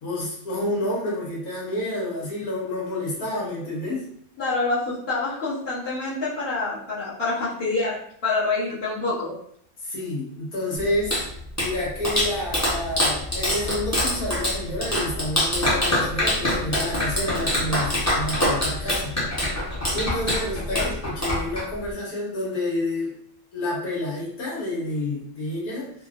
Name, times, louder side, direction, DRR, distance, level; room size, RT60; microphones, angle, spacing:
voice 1, 0.0-4.1 9.8-11.2 11.6-19.4 19.9-23.1 23.5-25.9, left 1 dB, 80° left, -5 dB, 1.6 m, -29 dB
voice 2, 4.4-9.3 20.7-20.9, left 3 dB, 45° left, -13 dB, 1.3 m, -26 dB
Clapping, 10.8-21.9, left 1 dB, 15° left, 0.7 m, -25 dB
3.9 x 2.1 x 2.4 m, 0.66 s
omnidirectional pair, 1.6 m